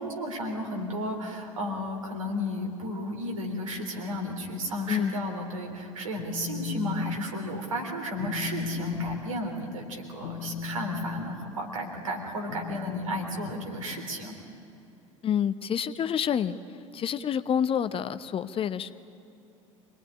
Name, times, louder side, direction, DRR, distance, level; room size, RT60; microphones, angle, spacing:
voice 1, 0.0-14.3, equal, 75° right, 1 dB, 3.6 m, -33 dB
voice 2, 4.9-5.2 15.2-16.6 16.9-18.9, left 8 dB, 35° left, 12 dB, 0.9 m, -28 dB
Telephone, 6.0-7.2 7.5-7.8 8.1-14.3, left 6 dB, 65° left, 1.3 m, -37 dB
26.0 x 19.5 x 9.8 m, 2.9 s
figure-of-eight pair, 65°, 17 cm